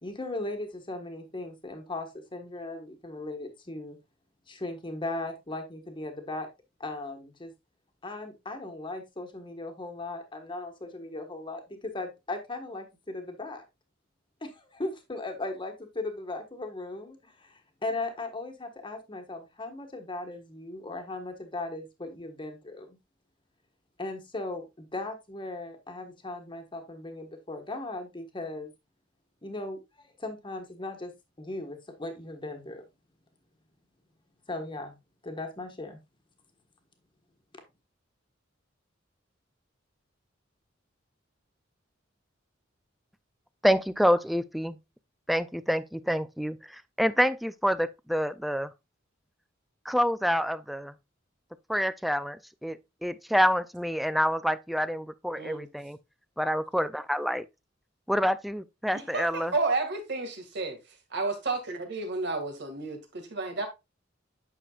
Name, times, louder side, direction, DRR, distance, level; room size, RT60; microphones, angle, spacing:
voice 1, 0.0-4.0 4.5-6.5 6.8-7.5 8.0-13.6 14.4-23.0 24.0-28.7 29.4-32.8 34.5-34.9 35.2-36.0, left 2 dB, 25° left, 1.4 m, -37 dB
voice 2, 43.6-44.8 45.3-48.7 49.9-50.9 51.7-56.0 56.4-57.5 58.1-59.5, equal, ahead, 0.3 m, -27 dB
voice 3, 55.4-55.7 59.1-60.8 61.1-63.7, right 3 dB, 65° right, 2.0 m, -31 dB
9.1 x 6.2 x 2.4 m
head